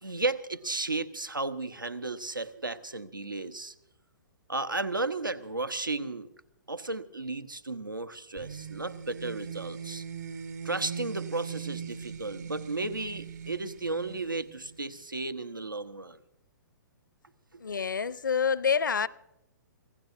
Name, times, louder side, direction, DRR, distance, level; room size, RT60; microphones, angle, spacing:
voice 1, 0.0-3.7 4.5-6.3 6.7-10.0 10.6-16.2 17.5-17.6, right 3 dB, 85° right, 1.1 m, -34 dB
sound 1, 8.4-15.0, right 7 dB, 65° right, 2.0 m, -40 dB
voice 2, 17.6-19.1, left 6 dB, 75° left, 0.7 m, -27 dB
26.5 x 16.5 x 2.6 m
figure-of-eight pair, 120°, 11 cm